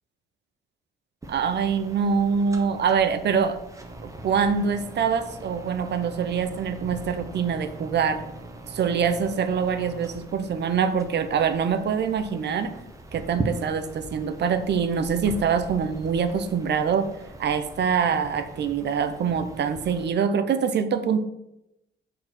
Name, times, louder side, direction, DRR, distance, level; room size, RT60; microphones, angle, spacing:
sound 1, 1.2-20.1, right 1 dB, 15° right, 1.3 m, -40 dB
voice 1, 1.3-3.6 4.0-8.2 8.7-12.7 13.1-17.1 17.4-21.2, right 6 dB, 60° right, 10 dB, 0.9 m, -24 dB
7.4 x 4.9 x 6.1 m, 0.86 s
cardioid pair, 90°, 20 cm